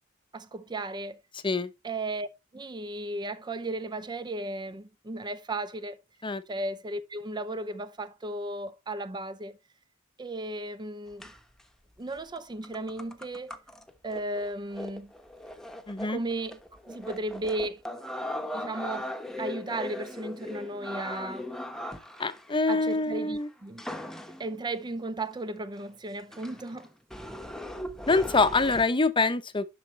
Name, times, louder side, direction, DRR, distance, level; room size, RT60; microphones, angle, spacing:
voice 1, 0.3-1.2 1.8-2.3 2.5-6.0 6.5-9.6 10.2-11.3 12.0-13.5 14.0-15.1 16.1-16.6 16.9-17.8 18.5-19.1 19.4-21.5 22.7-23.9 24.4-26.9, right 2 dB, 20° right, 0.5 m, -35 dB
sound 1, 11.2-11.6 12.1-12.4 12.6-22.8 23.8-24.6 25.3-25.4 25.8-25.9 26.3-28.8, left 1 dB, ahead, 1.0 m, -39 dB
voice 2, 15.9-16.2 22.2-23.5 28.1-29.7, left 3 dB, 25° left, 0.8 m, -25 dB
11.5 x 6.5 x 3.2 m
head